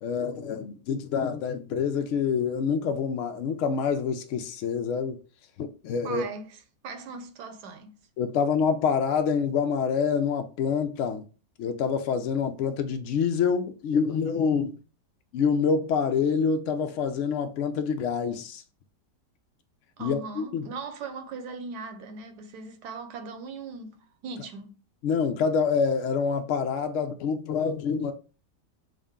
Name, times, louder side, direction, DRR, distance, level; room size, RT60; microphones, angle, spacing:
voice 1, 0.0-5.2 5.6-6.2 8.2-11.3 11.6-14.8 15.3-18.6 20.0-20.7 25.0-28.1, left 6 dB, 85° left, 0.6 m, -26 dB
voice 2, 6.0-8.0 20.0-24.7, right 4 dB, 75° right, 1.2 m, -39 dB
6.3 x 2.2 x 3.5 m
omnidirectional pair, 1.9 m